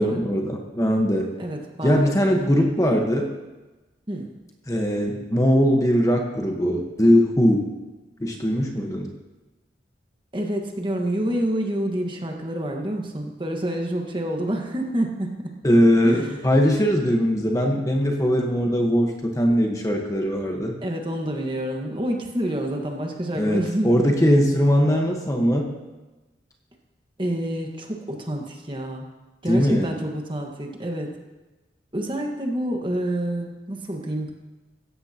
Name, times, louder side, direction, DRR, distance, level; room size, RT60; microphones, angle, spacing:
voice 1, 0.0-1.3 1.8-3.3 4.7-7.7 8.2-9.1 15.6-20.8 23.4-25.7 29.5-29.9, equal, 15° left, 1 dB, 1.3 m, -20 dB
voice 2, 1.4-2.6 4.1-4.3 10.3-15.6 16.0-16.4 20.8-24.2 27.2-29.1 29.4-31.2 31.9-34.3, right 1 dB, 25° right, 1 dB, 1.5 m, -28 dB
16.5 x 14.5 x 3.0 m, 1.1 s
head